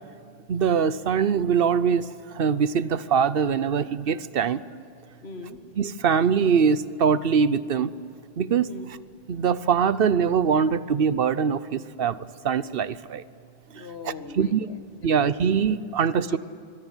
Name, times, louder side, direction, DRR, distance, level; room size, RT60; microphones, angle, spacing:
voice 1, 0.5-2.1 2.3-4.6 5.8-7.9 8.4-8.7 9.3-12.2 12.4-13.2 14.4-14.7 15.0-16.4, right 6 dB, 65° right, 16 dB, 1.0 m, -22 dB
voice 2, 5.2-5.6 8.7-8.9 13.7-15.3 16.2-16.4, left 4 dB, 80° left, 7 dB, 2.0 m, -40 dB
24.5 x 21.5 x 9.8 m, 2.5 s
omnidirectional pair, 1.1 m